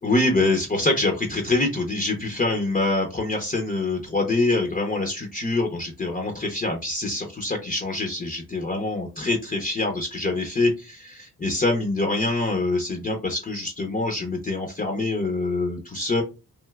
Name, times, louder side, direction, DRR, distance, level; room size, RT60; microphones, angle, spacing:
voice 1, 0.0-16.2, left 2 dB, 25° left, 3 dB, 0.6 m, -25 dB
3.2 x 2.6 x 2.3 m, 0.29 s
cardioid pair, 90°, 36 cm